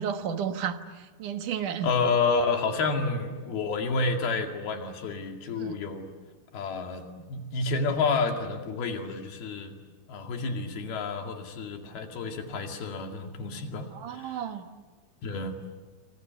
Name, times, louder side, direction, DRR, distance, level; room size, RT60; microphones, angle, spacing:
voice 1, 0.0-1.9 5.6-5.8 13.9-14.7, right 8 dB, 60° right, 8 dB, 2.5 m, -32 dB
voice 2, 1.8-6.1 6.5-7.0 7.3-9.7 10.1-14.4 15.2-15.6, left 4 dB, 70° left, 4 dB, 4.2 m, -29 dB
27.0 x 26.0 x 8.1 m, 1.3 s
omnidirectional pair, 4.7 m